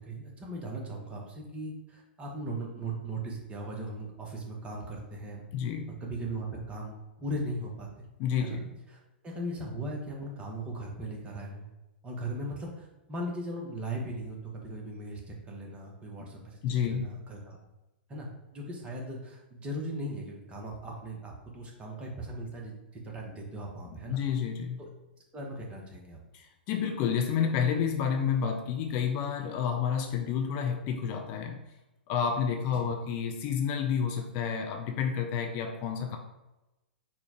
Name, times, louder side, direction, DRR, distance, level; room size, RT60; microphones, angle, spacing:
voice 1, 0.0-5.4 5.9-8.1 8.4-8.6 8.9-11.7 12.0-16.6 16.8-17.6 18.1-24.2 24.8-24.9 25.3-26.2 32.8-32.9, right 1 dB, 20° right, -1 dB, 1.0 m, -38 dB
voice 2, 5.5-5.9 8.2-8.7 16.6-17.1 24.1-24.8 26.3-31.6 32.1-36.2, left 7 dB, 35° left, 4 dB, 0.4 m, -30 dB
4.3 x 2.3 x 4.2 m, 0.99 s
figure-of-eight pair, 105°, 6 cm